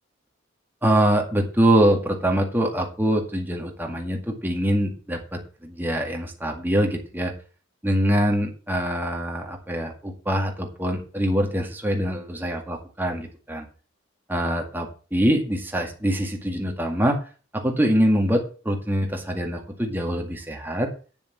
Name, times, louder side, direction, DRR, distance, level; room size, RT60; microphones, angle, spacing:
voice 1, 0.8-7.3 7.8-13.7 14.3-17.2 17.5-20.9, equal, 10° right, 2 dB, 2.0 m, -24 dB
8.9 x 7.0 x 7.2 m, 0.37 s
head